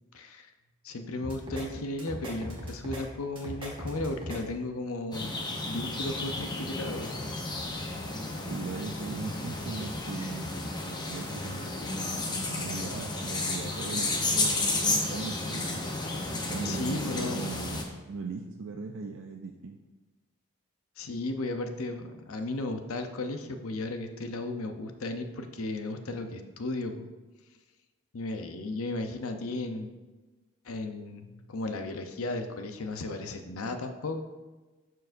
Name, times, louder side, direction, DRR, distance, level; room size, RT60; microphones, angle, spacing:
voice 1, 0.1-0.5 0.8-5.4 5.7-7.2 7.5-7.6 16.6-17.4 21.0-27.1 28.1-29.9 30.6-34.2, left 2 dB, 75° left, 6 dB, 0.7 m, -35 dB
sound 1, 1.2-1.6 2.0-3.0 3.4-4.4, equal, 25° right, 1.6 m, -38 dB
sound 2, 5.1-17.8, left 2 dB, 20° left, 0.7 m, -32 dB
voice 2, 8.5-15.7 16.5-19.8, right 4 dB, 60° right, 2 dB, 0.4 m, -39 dB
12.0 x 4.7 x 2.6 m, 1.2 s
head